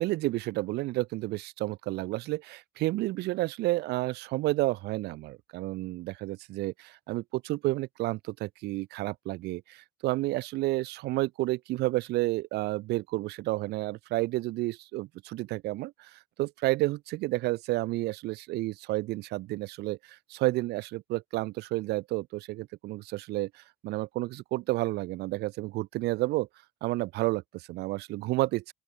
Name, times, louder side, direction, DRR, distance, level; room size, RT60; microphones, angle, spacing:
voice 1, 0.0-26.5 26.8-28.7, right 19 dB, 80° right, 0.6 m, -31 dB
open air
cardioid pair, 110°, 17 cm